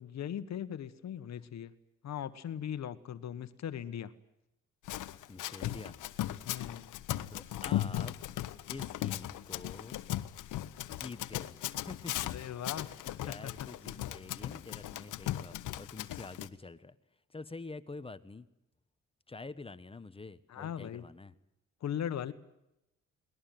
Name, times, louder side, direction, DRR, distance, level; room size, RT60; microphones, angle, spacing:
voice 1, 0.0-1.7 2.0-4.1 6.4-6.9 12.3-13.7 20.5-21.0 21.8-22.3, left 9 dB, 60° left, 12 dB, 1.4 m, -39 dB
Run, 4.9-16.5, left 13 dB, 80° left, 1.1 m, -38 dB
voice 2, 5.3-6.0 7.3-8.4 8.7-10.0 10.9-12.3 12.7-16.9 17.3-18.5 19.3-21.3, left 3 dB, 20° left, 13 dB, 1.2 m, -47 dB
22.0 x 19.5 x 9.3 m, 0.86 s
cardioid pair, 90°, 30 cm